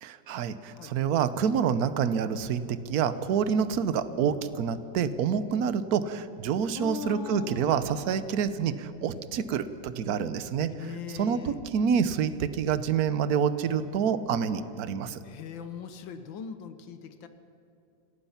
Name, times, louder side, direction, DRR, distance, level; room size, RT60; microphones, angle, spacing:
voice 1, 0.0-15.2, right 7 dB, 60° right, 13 dB, 1.3 m, -27 dB
voice 2, 6.7-8.3 10.8-11.6 15.2-17.3, left 7 dB, 90° left, 9 dB, 1.7 m, -40 dB
27.0 x 17.0 x 5.8 m, 2.8 s
omnidirectional pair, 2.0 m